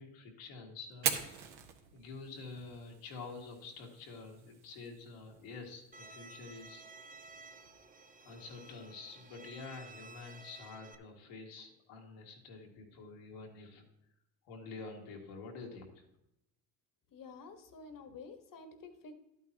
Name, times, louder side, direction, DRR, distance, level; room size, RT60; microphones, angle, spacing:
voice 1, 0.0-1.5 1.9-6.8 8.2-13.8 14.4-16.1, left 4 dB, 80° left, 0 dB, 2.1 m, -48 dB
Fire, 0.9-8.9, right 7 dB, 65° right, 1.4 m, -44 dB
Bowed string instrument, 5.9-11.0, right 3 dB, 20° right, 0.8 m, -54 dB
voice 2, 17.1-19.1, left 4 dB, 50° left, 7 dB, 1.5 m, -50 dB
11.5 x 9.1 x 2.9 m, 0.86 s
supercardioid pair, 75°, 42 cm